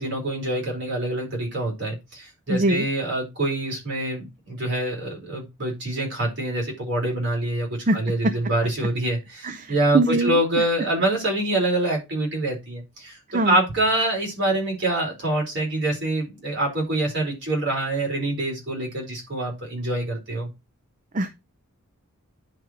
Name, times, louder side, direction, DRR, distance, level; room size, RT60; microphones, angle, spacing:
voice 1, 0.0-20.5, right 1 dB, 55° right, -2 dB, 4.5 m, -25 dB
voice 2, 2.5-2.9 7.9-8.0 8.2-8.3 9.4-10.4 13.3-13.6 21.1-21.3, right 2 dB, 35° right, 9 dB, 0.6 m, -22 dB
10.0 x 4.8 x 4.5 m, 0.25 s
head